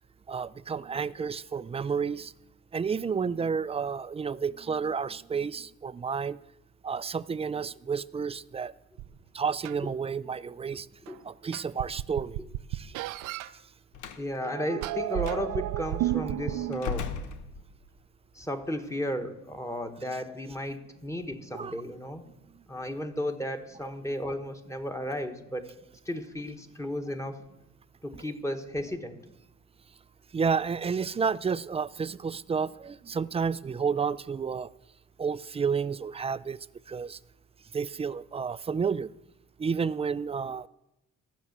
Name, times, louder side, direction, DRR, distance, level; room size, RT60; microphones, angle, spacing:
voice 1, 0.3-2.3 2.7-6.4 6.8-8.7 9.3-10.9 11.2-12.4 12.7-12.9 21.5-21.7 30.3-34.7 35.2-36.6 36.9-37.2 37.7-39.1 39.6-40.7, right 6 dB, 20° right, 0.3 m, -31 dB
sound 1, 9.0-9.1 9.6-9.7 11.1-11.2 11.5-13.5 14.3-16.9, right 15 dB, 85° right, 0.5 m, -32 dB
Slam, 13.9-14.3 15.2-15.4 16.7-18.0, left 5 dB, 80° left, 1.0 m, -36 dB
voice 2, 14.2-17.1 18.3-22.2 22.7-25.7 26.1-27.4 28.0-29.2, equal, 10° left, 1.2 m, -34 dB
13.5 x 6.1 x 8.0 m
cardioid pair, 90°, 30 cm